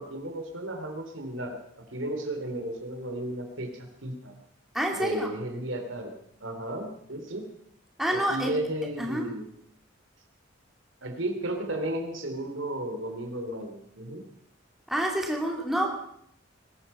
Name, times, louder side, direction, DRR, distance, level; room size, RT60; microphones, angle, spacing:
voice 1, 0.0-4.3 4.9-7.5 8.1-9.4 11.0-14.2, right 1 dB, 85° right, 5 dB, 3.3 m, -34 dB
voice 2, 4.7-5.3 8.0-8.6 9.0-9.3 14.9-15.9, equal, ahead, 0 dB, 2.8 m, -28 dB
20.0 x 13.0 x 5.6 m, 0.70 s
head